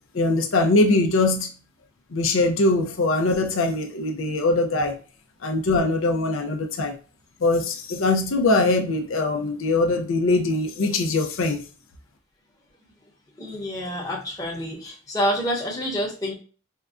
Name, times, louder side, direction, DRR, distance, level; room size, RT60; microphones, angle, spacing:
voice 1, 0.1-1.5 2.1-5.0 5.4-6.9 7.4-11.6, left 2 dB, 75° left, 3 dB, 0.5 m, -22 dB
voice 2, 13.4-16.3, equal, 15° left, -4 dB, 0.9 m, -27 dB
4.4 x 2.2 x 2.5 m, 0.37 s
head